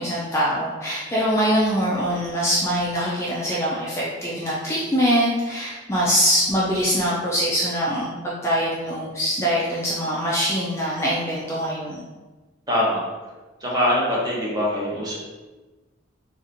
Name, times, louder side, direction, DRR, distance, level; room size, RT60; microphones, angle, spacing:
voice 1, 0.0-12.0, equal, 15° left, -7 dB, 0.4 m, -23 dB
voice 2, 12.7-13.0 13.6-15.1, left 1 dB, 20° right, -5 dB, 0.8 m, -23 dB
4.1 x 2.5 x 2.6 m, 1.2 s
head